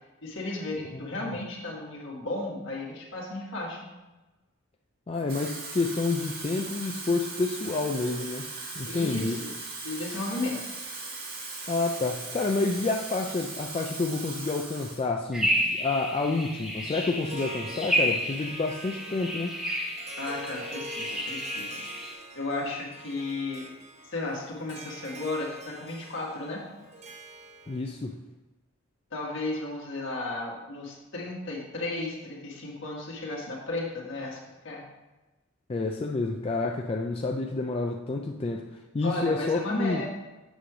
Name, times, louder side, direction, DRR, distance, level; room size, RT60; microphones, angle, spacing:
voice 1, 0.2-3.9 8.8-9.5 9.8-10.6 20.2-21.8 22.3-23.7 24.1-26.6 29.1-34.8 39.0-40.1, left 2 dB, 65° left, -3 dB, 1.8 m, -34 dB
voice 2, 5.1-8.5 8.8-9.4 11.7-19.6 27.7-28.2 35.7-38.7 38.9-40.1, left 3 dB, 30° left, 2 dB, 0.4 m, -29 dB
Water tap faucet / Fill (with liquid), 5.1-15.1 15.4-15.7, right 3 dB, 50° right, 1.7 m, -39 dB
sound 1, 15.3-22.1, equal, 5° right, 1.0 m, -31 dB
Harp, 17.1-28.0, right 1 dB, 35° right, 0.7 m, -44 dB
8.1 x 3.3 x 6.1 m, 1.1 s
head